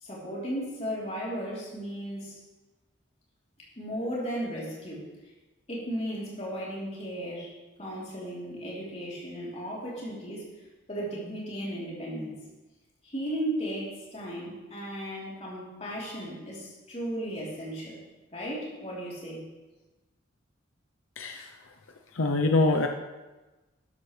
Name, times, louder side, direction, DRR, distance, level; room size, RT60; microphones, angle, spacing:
voice 1, 0.0-2.4 3.8-5.0 5.7-7.5 7.8-10.4 10.9-12.4 13.0-18.0 18.3-19.4, equal, 30° left, -6 dB, 3.5 m, -35 dB
voice 2, 22.2-22.9, left 2 dB, 85° left, 3 dB, 0.7 m, -24 dB
12.5 x 11.5 x 3.3 m, 1.1 s
head